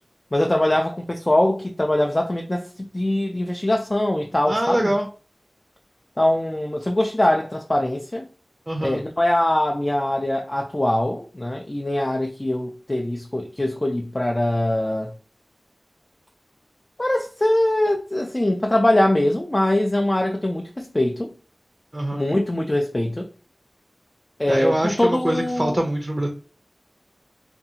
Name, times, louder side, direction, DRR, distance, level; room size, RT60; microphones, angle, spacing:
voice 1, 0.3-4.9 6.2-8.3 8.8-15.1 17.0-21.3 22.1-23.3 24.4-25.8, left 1 dB, 35° left, 0.3 m, -22 dB
voice 2, 4.5-5.1 8.7-9.0 21.9-22.2 24.5-26.3, right 1 dB, 30° right, 0.4 m, -24 dB
2.6 x 2.3 x 2.7 m
wide cardioid pair, 40°, 0 cm